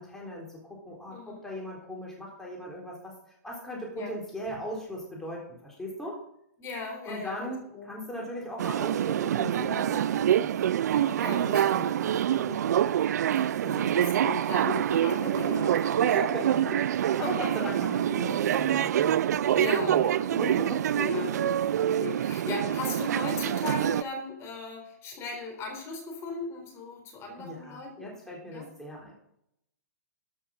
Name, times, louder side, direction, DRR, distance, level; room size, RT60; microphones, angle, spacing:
voice 1, 0.0-6.2 7.1-10.5 10.9-12.7 13.6-14.7 16.0-20.9 22.6-22.7 27.4-29.1, equal, 5° left, -3 dB, 3.7 m, -39 dB
voice 2, 1.1-1.4 3.9-4.2 6.6-7.9 11.2-12.0 12.3-12.6 13.3-17.7 19.5-20.4 21.0-28.1 28.5-28.7, left 3 dB, 25° left, 3 dB, 3.7 m, -38 dB
sound 1, 8.6-24.0, right 10 dB, 70° right, 0.5 m, -26 dB
13.5 x 7.2 x 6.4 m, 0.74 s
hypercardioid pair, 135°, 9 cm